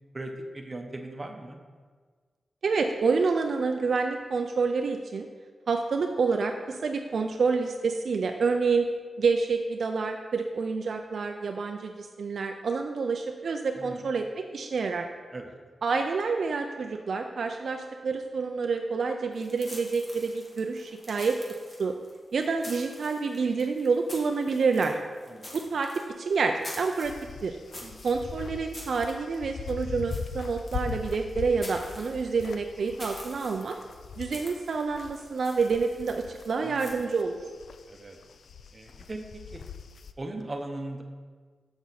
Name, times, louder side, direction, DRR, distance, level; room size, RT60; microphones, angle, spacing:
voice 1, 0.1-1.6 13.8-14.0 15.3-15.6 25.3-25.5 27.8-27.9 36.6-37.0 37.9-38.2 38.7-39.6 40.2-41.0, right 2 dB, 35° right, 4 dB, 0.8 m, -39 dB
voice 2, 2.6-5.3 5.7-8.9 9.2-15.1 15.8-21.4 21.8-21.9 22.3-24.9 25.5-25.9 26.2-27.1 27.4-27.6 28.0-33.8 34.2-37.4, right 4 dB, 70° right, 4 dB, 0.4 m, -28 dB
sound 1, 19.3-36.9, left 1 dB, 35° left, 1.7 m, -47 dB
sound 2, 27.0-35.2 35.5-40.1, left 6 dB, 75° left, 0.3 m, -41 dB
7.0 x 6.3 x 4.1 m, 1.5 s
cardioid pair, 80°, 0 cm